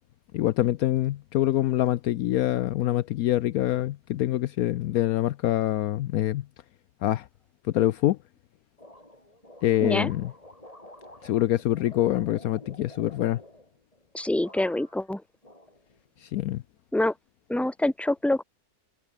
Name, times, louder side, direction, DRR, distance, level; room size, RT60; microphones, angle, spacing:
voice 1, 0.3-6.5 7.0-7.3 7.7-8.2 9.6-10.3 11.2-13.4 16.2-16.6, left 14 dB, 70° left, 1.0 m, -25 dB
sound 1, 8.8-14.1 14.4-15.1 15.4-16.3, left 1 dB, 20° left, 6.4 m, -49 dB
voice 2, 14.1-15.2 16.9-17.1 17.5-18.4, left 1 dB, ahead, 1.7 m, -25 dB
omnidirectional pair, 1.7 m